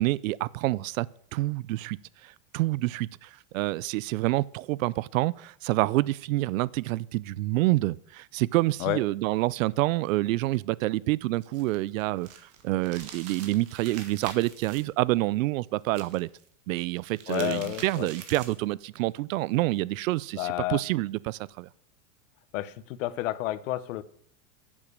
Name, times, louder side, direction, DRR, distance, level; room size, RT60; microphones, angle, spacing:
voice 1, 0.0-2.0 2.2-12.3 12.6-16.3 16.7-21.7, right 18 dB, 85° right, 0.5 m, -27 dB
sound 1, 11.4-14.8 15.9-16.4 16.9-18.7, right 8 dB, 40° right, 1.6 m, -45 dB
voice 2, 17.3-18.1 20.4-20.8 22.5-24.0, left 15 dB, 75° left, 0.8 m, -30 dB
10.0 x 7.3 x 6.6 m
supercardioid pair, 155°, 39 cm